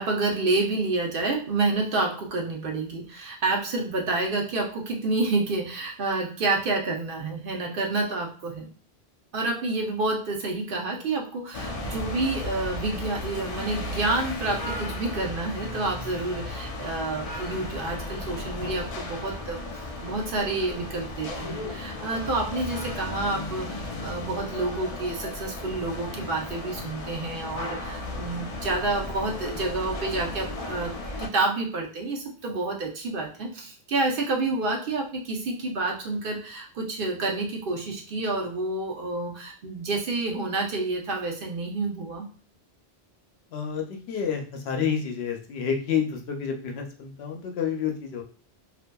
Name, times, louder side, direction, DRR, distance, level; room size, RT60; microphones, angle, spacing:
voice 1, 0.0-8.7 9.3-19.6 20.0-30.9 31.2-42.3, right 2 dB, 65° right, 1 dB, 0.8 m, -29 dB
sound 1, 11.5-31.3, left 2 dB, 50° left, 0.4 m, -35 dB
voice 2, 43.5-48.2, left 7 dB, 85° left, 3 dB, 0.8 m, -29 dB
2.6 x 2.4 x 2.2 m, 0.41 s
omnidirectional pair, 1.0 m